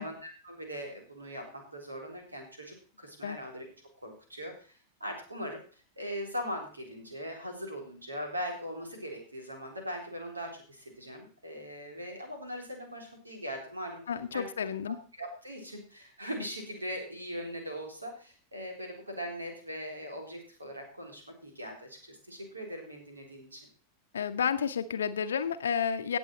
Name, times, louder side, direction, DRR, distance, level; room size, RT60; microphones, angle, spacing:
voice 1, 0.0-3.7 4.0-4.7 5.0-14.0 14.3-14.5 15.2-23.7, equal, 80° right, 3 dB, 3.7 m, -40 dB
voice 2, 14.1-15.0 24.1-26.2, left 7 dB, 65° left, 9 dB, 0.8 m, -31 dB
17.5 x 7.2 x 4.3 m, 0.39 s
figure-of-eight pair, 90°, 0 cm